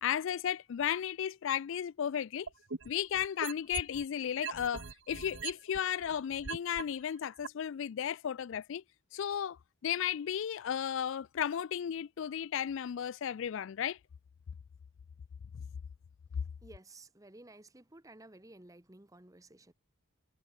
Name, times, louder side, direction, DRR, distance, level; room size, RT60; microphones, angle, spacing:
voice 1, 0.0-2.5 2.9-8.8 9.1-14.0, left 9 dB, 60° left, 0.3 m, -34 dB
sound 1, 2.5-4.0 4.4-6.8 7.4-7.5, right 5 dB, 55° right, 1.1 m, -40 dB
voice 2, 16.6-19.7, right 2 dB, 15° right, 0.9 m, -54 dB
head